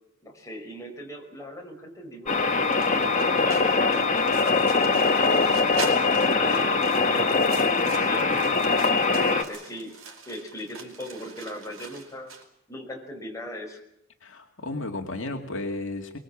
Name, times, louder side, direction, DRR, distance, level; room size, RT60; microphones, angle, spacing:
voice 1, 0.2-5.5 6.0-8.6 9.3-9.9 10.3-12.3 12.7-13.8, equal, 15° left, 0 dB, 5.6 m, -39 dB
sound 1, 2.3-9.4, left 4 dB, 35° left, 1.6 m, -22 dB
sound 2, 2.6-12.4, right 4 dB, 90° right, 4.8 m, -42 dB
voice 2, 14.2-16.2, left 2 dB, 65° left, 2 dB, 2.3 m, -33 dB
24.0 x 21.5 x 7.4 m, 0.80 s
head